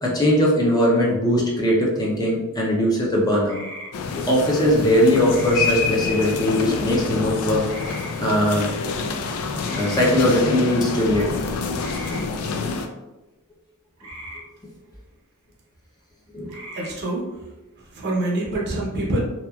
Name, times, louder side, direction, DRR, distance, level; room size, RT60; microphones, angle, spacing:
voice 1, 0.0-3.6 4.2-7.6 8.2-8.7 9.7-11.5 16.3-16.5, equal, 20° left, -4 dB, 0.5 m, -20 dB
sound 1, 3.5-3.9 5.3-5.7 7.7-8.2 9.6-10.0 11.8-12.2 14.0-14.4 16.5-16.9, right 1 dB, 85° right, 0.8 m, -38 dB
sound 2, 3.9-12.9, left 4 dB, 80° left, 0.3 m, -27 dB
voice 2, 16.7-17.3 17.9-19.2, right 2 dB, 50° right, -3 dB, 0.6 m, -25 dB
2.8 x 2.3 x 2.2 m, 1.0 s
head